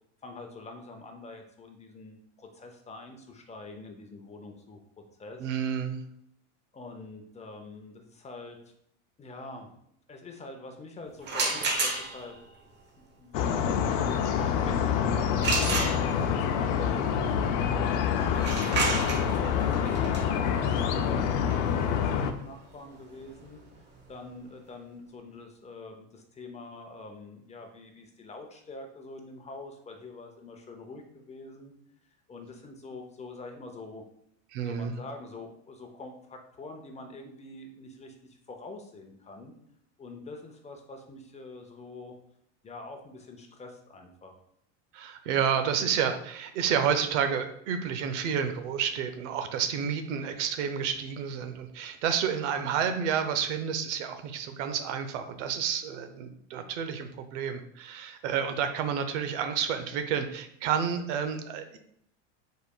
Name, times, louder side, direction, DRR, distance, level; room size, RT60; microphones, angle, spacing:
voice 1, 0.2-4.8 5.2-5.4 6.7-8.6 9.2-9.7 10.1-12.4 13.1-14.0 14.2-18.5 18.9-23.6 24.1-31.7 32.3-34.0 34.6-39.5 40.0-42.1 42.6-44.3, left 2 dB, 20° left, 4 dB, 0.6 m, -45 dB
voice 2, 5.4-6.0 34.5-34.9 44.9-61.8, right 7 dB, 80° right, 8 dB, 0.7 m, -30 dB
sound 1, 11.2-12.4 15.4-16.4 18.3-24.0, right 3 dB, 30° right, 1.0 m, -32 dB
sound 2, 13.3-22.3, left 7 dB, 70° left, 0.6 m, -27 dB
5.0 x 4.2 x 2.3 m, 0.71 s
supercardioid pair, 120°, 36 cm